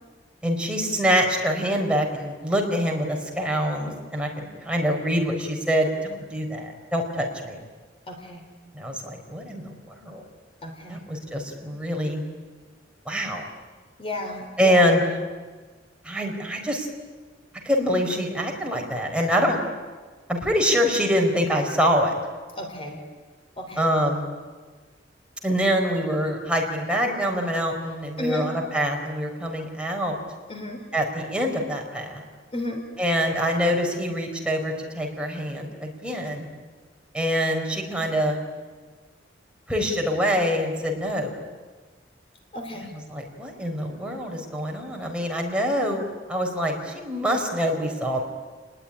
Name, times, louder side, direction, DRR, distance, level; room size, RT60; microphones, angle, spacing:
voice 1, 0.4-7.6 8.7-10.2 10.9-12.2 13.1-13.4 14.6-15.1 16.0-16.9 17.6-19.6 20.3-22.1 23.8-24.3 25.4-30.2 30.9-32.2 33.0-36.5 37.1-38.4 39.7-41.4 42.9-48.2, equal, 5° right, 0 dB, 4.4 m, -25 dB
voice 2, 8.1-8.4 10.6-11.0 14.0-14.8 22.6-23.0 23.6-23.9 28.2-28.5 30.5-30.8 32.5-32.8 42.5-42.9, left 1 dB, 30° left, 4 dB, 3.3 m, -33 dB
29.0 x 20.5 x 9.9 m, 1.4 s
head